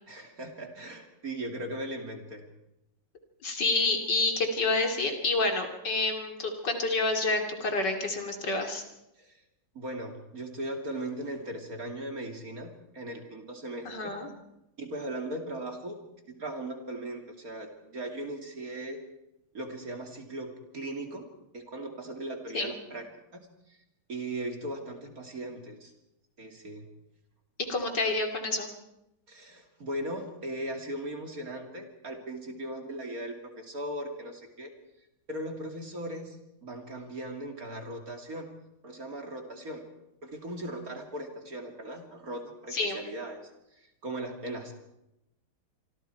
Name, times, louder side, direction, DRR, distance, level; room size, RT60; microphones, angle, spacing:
voice 1, 0.1-2.4 9.2-9.4 9.7-14.1 14.8-16.0 16.3-19.0 19.5-21.3 21.5-23.1 23.3-23.8 24.1-25.9 26.4-26.8 29.3-34.7 35.3-38.5 38.8-39.8 40.2-43.4 43.7-44.7, right 1 dB, 40° right, 3 dB, 3.0 m, -38 dB
voice 2, 3.4-8.8 13.8-14.3 22.5-22.7 27.7-28.7 42.7-43.0, left 3 dB, 55° left, 3 dB, 3.1 m, -28 dB
26.0 x 25.5 x 4.6 m, 0.87 s
omnidirectional pair, 2.3 m